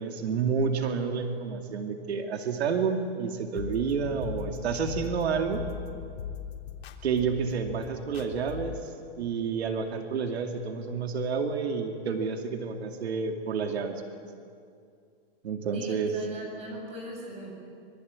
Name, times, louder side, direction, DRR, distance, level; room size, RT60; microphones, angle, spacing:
voice 1, 0.0-5.6 7.0-8.9 9.2-14.0 15.4-16.1, right 5 dB, 85° right, 4 dB, 2.5 m, -29 dB
sound 1, 3.6-8.8, left 8 dB, 75° left, 3.6 m, -39 dB
voice 2, 15.7-17.5, equal, 20° right, 0 dB, 7.7 m, -40 dB
26.0 x 23.0 x 9.7 m, 2.3 s
supercardioid pair, 165°, 31 cm